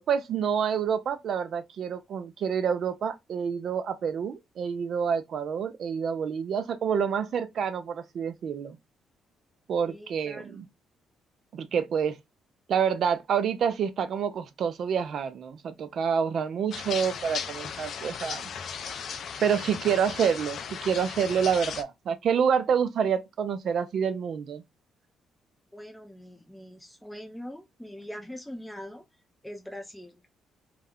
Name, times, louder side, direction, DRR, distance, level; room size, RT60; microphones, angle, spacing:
voice 1, 0.0-8.8 9.7-10.6 11.5-12.2 12.7-18.4 19.4-24.6, right 7 dB, 60° right, 0.4 m, -28 dB
voice 2, 9.8-10.6 25.7-29.1 29.4-30.2, equal, 5° left, 0.5 m, -42 dB
sound 1, 16.7-21.8, left 6 dB, 65° left, 0.4 m, -36 dB
2.3 x 2.0 x 3.5 m
cardioid pair, 90°, 0 cm